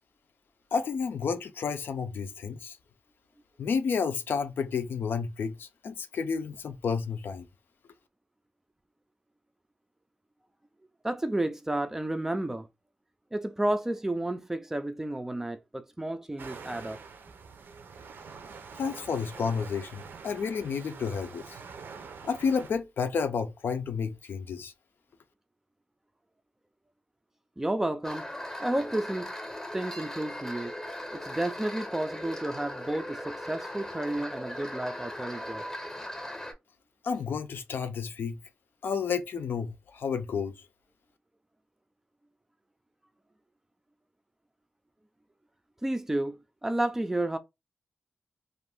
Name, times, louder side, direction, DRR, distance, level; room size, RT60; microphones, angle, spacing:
voice 1, 0.7-2.8 3.6-7.5 18.8-21.6 22.2-24.7 37.0-38.4 38.8-40.6, left 6 dB, 85° left, 0.5 m, -31 dB
voice 2, 11.0-12.7 13.3-17.0 27.6-28.3 28.6-29.3 29.7-30.7 31.1-35.7 45.8-47.4, right 1 dB, 10° right, 0.3 m, -31 dB
sound 1, 16.4-22.7, right 5 dB, 80° right, 0.5 m, -45 dB
sound 2, 28.0-36.5, left 1 dB, 15° left, 0.7 m, -39 dB
2.5 x 2.5 x 3.4 m
wide cardioid pair, 160°, 4 cm